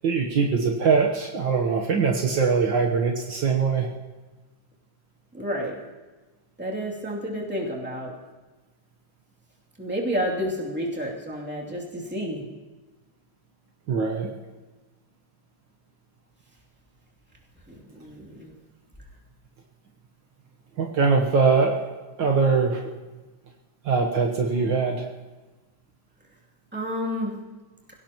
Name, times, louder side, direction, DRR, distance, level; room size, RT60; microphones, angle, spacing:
voice 1, 0.0-3.9 13.9-14.3 20.8-21.8 22.2-22.9 23.9-25.1, right 5 dB, 65° right, 1 dB, 1.8 m, -22 dB
voice 2, 5.3-5.8 6.6-8.1 9.8-12.4 17.7-18.5 26.7-27.3, equal, 5° right, -4 dB, 2.6 m, -30 dB
27.5 x 17.0 x 3.0 m, 1.2 s
omnidirectional pair, 2.3 m